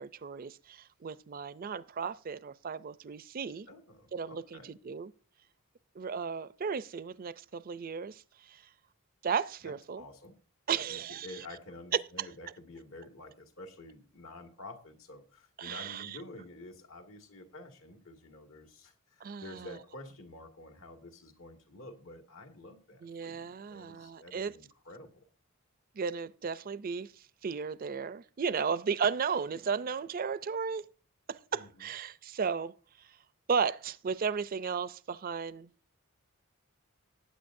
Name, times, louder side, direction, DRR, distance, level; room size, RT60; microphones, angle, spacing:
voice 1, 0.0-3.7 4.1-5.1 6.0-8.6 9.2-10.0 10.7-11.3 11.9-12.3 15.6-16.2 19.2-19.7 23.0-24.5 25.9-27.1 27.4-30.9 31.3-32.7 33.5-35.7, right 6 dB, 40° right, 0.4 m, -34 dB
voice 2, 3.7-4.8 9.6-10.4 10.7-25.3 31.5-31.9, left 2 dB, 75° left, 2.0 m, -49 dB
19.0 x 8.8 x 2.6 m
head